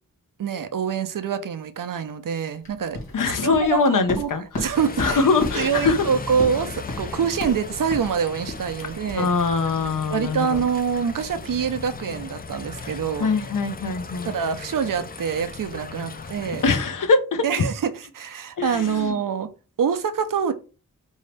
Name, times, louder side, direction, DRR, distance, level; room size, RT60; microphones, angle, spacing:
voice 1, 0.4-3.0 3.4-4.3 4.6-5.2 5.5-9.3 10.1-13.3 14.2-16.6 17.4-19.5 19.8-20.5, right 7 dB, 65° right, 0.5 m, -25 dB
sound 1, 2.6-11.4, left 2 dB, 90° left, 1.4 m, -35 dB
voice 2, 3.1-4.7 5.0-6.1 9.1-10.6 13.2-14.3 16.6-17.4 18.6-19.1, left 4 dB, 65° left, 0.6 m, -22 dB
sound 2, 4.7-16.7, left 4 dB, 25° left, 0.4 m, -37 dB
3.9 x 2.7 x 3.3 m
wide cardioid pair, 70°, 35 cm